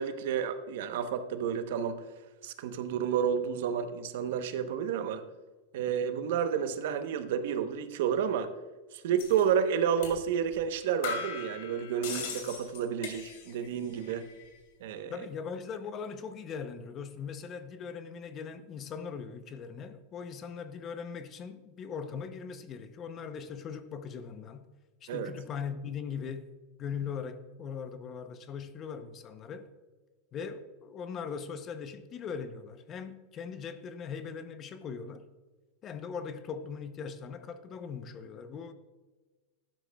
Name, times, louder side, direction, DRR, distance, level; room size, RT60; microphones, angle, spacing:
voice 1, 0.0-2.0 2.4-5.2 5.7-8.5 8.9-14.3 14.8-15.1 25.1-25.3, right 8 dB, 65° right, 0.8 m, -30 dB
sound 1, 9.2-9.4 10.0-10.2 10.5-10.6 11.0-13.7 13.9-14.5, left 6 dB, 60° left, 2.7 m, -39 dB
voice 2, 15.1-24.7 25.0-26.5 26.8-29.7 30.3-35.3 35.8-38.7, left 6 dB, 25° left, 0.6 m, -40 dB
12.0 x 11.0 x 2.3 m
supercardioid pair, 165°, 0 cm